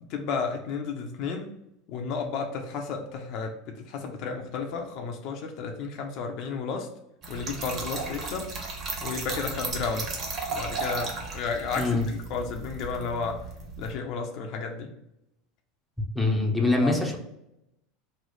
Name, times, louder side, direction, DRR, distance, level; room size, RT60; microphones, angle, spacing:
voice 1, 0.1-1.5 1.9-6.9 7.3-8.5 9.0-10.1 10.5-13.4 13.8-14.9 16.6-17.0, left 5 dB, 55° left, 3 dB, 0.5 m, -32 dB
Trickle dribble / Fill (with liquid), 7.2-14.0, right 3 dB, 40° right, 0.8 m, -35 dB
voice 2, 16.1-17.2, left 2 dB, ahead, -1 dB, 0.7 m, -24 dB
3.1 x 2.0 x 4.0 m, 0.86 s
hypercardioid pair, 90°, 0 cm